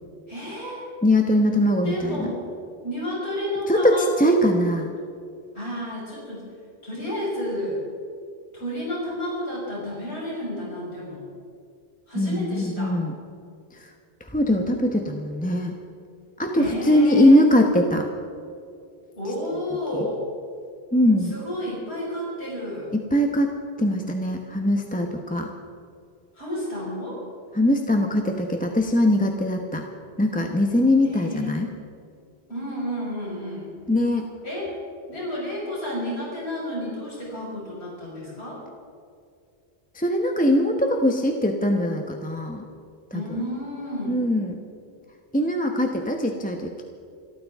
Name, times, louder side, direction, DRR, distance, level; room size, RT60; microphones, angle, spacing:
voice 1, 0.3-0.9 1.8-2.4 2.8-4.4 5.5-6.5 6.8-7.8 8.5-11.2 12.1-13.0 16.5-17.4 19.2-20.2 21.3-22.9 26.3-27.2 31.1-31.5 32.5-33.7 34.4-34.8 35.1-38.6 43.1-44.2, left 1 dB, 90° left, -6 dB, 5.8 m, -31 dB
voice 2, 1.0-2.3 3.7-4.9 12.2-13.1 13.7-13.9 14.2-15.8 16.4-18.1 19.9-20.0 20.9-21.3 22.9-23.5 23.8-25.5 27.5-29.8 30.2-31.7 33.9-34.3 39.9-42.7 43.1-43.4 44.1-44.6 45.3-46.8, left 1 dB, 10° left, 2 dB, 1.0 m, -21 dB
27.0 x 13.5 x 3.6 m, 2.3 s
omnidirectional pair, 1.1 m